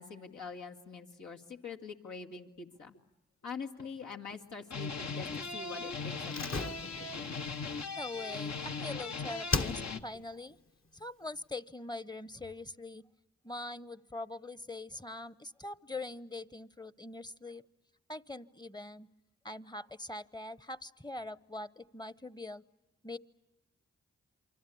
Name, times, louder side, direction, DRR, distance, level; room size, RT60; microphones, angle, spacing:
voice 1, 0.0-2.9 3.4-6.6, left 5 dB, 80° left, 0 dB, 2.3 m, -44 dB
sound 1, 3.0-3.1 3.6-4.3 4.6-10.0, left 4 dB, 65° left, 1.3 m, -39 dB
Slam, 6.3-9.0 9.5-10.2 10.5-10.6, left 3 dB, 45° left, 1.3 m, -37 dB
voice 2, 7.9-10.6 10.9-13.0 13.4-17.6 18.1-19.1 19.4-22.6 23.0-23.2, left 2 dB, 15° left, 19 dB, 0.9 m, -43 dB
28.0 x 24.5 x 8.5 m, 0.93 s
cardioid pair, 45°, 29 cm